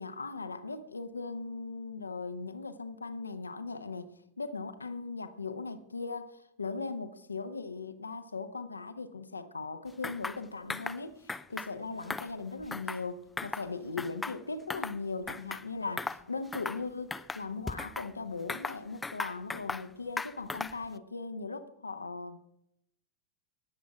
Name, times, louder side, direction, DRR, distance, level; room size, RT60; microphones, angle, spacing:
voice 1, 0.0-22.4, left 4 dB, 80° left, 10 dB, 0.9 m, -39 dB
sound 1, 10.0-10.4 10.7-11.0 11.3-11.7 12.0-13.1 13.4-13.7 14.0-15.0 15.3-15.6 16.0-16.2 16.5-16.8 17.1-18.1 18.5-19.9 20.2-20.9, left 3 dB, 10° left, 0.5 m, -37 dB
19.5 x 7.3 x 4.8 m, 0.77 s
figure-of-eight pair, 90°, 0 cm